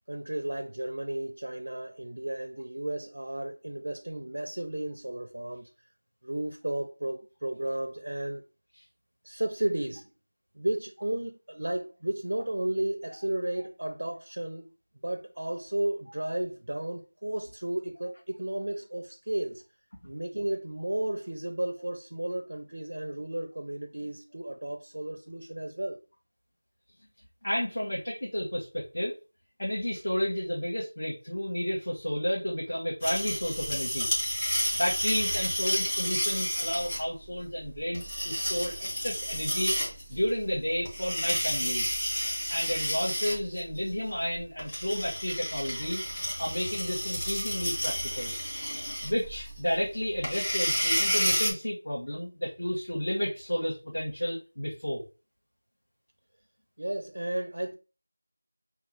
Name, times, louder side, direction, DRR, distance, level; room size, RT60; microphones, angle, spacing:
voice 1, 0.1-5.7 6.2-8.4 9.2-10.1 10.5-14.7 15.0-19.6 20.0-26.0 48.7-48.9 56.8-57.7, right 1 dB, 50° right, 0.5 m, -33 dB
voice 2, 27.4-29.1 29.6-34.1 34.7-39.7 40.1-42.0 42.5-46.1 46.4-48.3 49.0-55.0, equal, 50° left, 1.3 m, -31 dB
sound 1, 33.0-51.5, equal, 5° left, 0.7 m, -31 dB
5.4 x 2.3 x 3.3 m
figure-of-eight pair, 180°, 0 cm